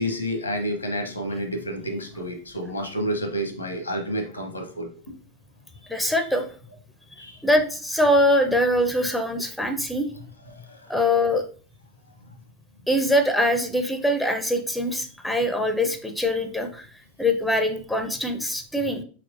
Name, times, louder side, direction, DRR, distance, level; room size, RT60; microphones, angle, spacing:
voice 1, 0.0-4.9 5.9-6.1 7.2-7.4 10.5-10.9, equal, 85° left, 4 dB, 0.8 m, -30 dB
voice 2, 5.9-6.5 7.4-10.1 10.9-11.4 12.9-16.9 17.2-19.0, left 1 dB, ahead, 6 dB, 0.4 m, -23 dB
3.5 x 2.9 x 2.5 m, 0.41 s
figure-of-eight pair, 90°, 0 cm